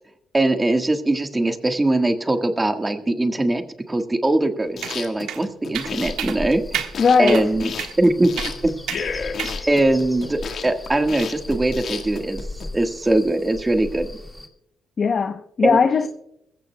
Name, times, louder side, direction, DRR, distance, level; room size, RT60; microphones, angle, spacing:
voice 1, 0.3-6.8 7.2-8.7 9.1-9.3 9.7-12.5 12.7-14.2 15.6-15.8, right 2 dB, 15° right, 1.5 m, -21 dB
sound 1, 4.6-12.7, left 6 dB, 60° left, 1.5 m, -32 dB
sound 2, 4.8-5.0 5.3-5.4 5.7-5.9 6.2-6.4 6.7-6.9 7.3-7.4 7.8-7.9 8.4-8.5 8.9-9.0 9.4-9.6, right 10 dB, 90° right, 1.4 m, -28 dB
sound 3, 5.7-14.5, left 1 dB, 10° left, 1.8 m, -37 dB
voice 2, 7.0-7.5 9.5-9.7 15.0-16.1, left 5 dB, 45° left, 0.7 m, -19 dB
21.0 x 15.5 x 2.2 m
cardioid pair, 90°, 0 cm